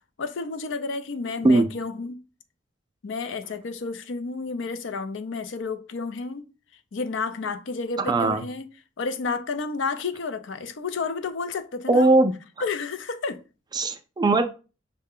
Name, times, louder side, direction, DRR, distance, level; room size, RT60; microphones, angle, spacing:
voice 1, 0.2-2.2 3.0-6.5 6.9-8.7 9.0-12.2 12.6-13.4, left 4 dB, 70° left, 0.5 m, -31 dB
voice 2, 8.0-8.4 11.9-12.3 13.7-14.4, right 2 dB, 20° right, 0.3 m, -19 dB
5.5 x 2.1 x 3.6 m
head